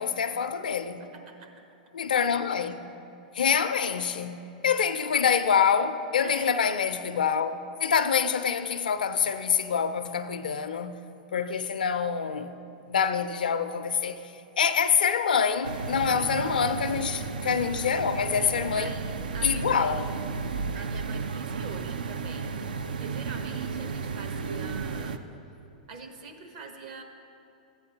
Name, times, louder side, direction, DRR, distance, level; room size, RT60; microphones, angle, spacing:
voice 1, 0.0-1.0 1.9-2.8 3.3-7.5 7.8-11.0 11.3-12.6 12.9-14.2 14.6-18.9 19.4-20.1, left 7 dB, 85° left, 0.5 m, -26 dB
voice 2, 1.0-1.6 6.2-6.5 11.4-11.5 16.8-17.1 18.4-20.3 20.7-22.6 22.9-25.3 25.9-27.0, right 4 dB, 55° right, 1.1 m, -44 dB
sound 1, 15.6-25.2, right 5 dB, 85° right, 0.5 m, -33 dB
13.5 x 8.5 x 2.9 m
hypercardioid pair, 120°, 5 cm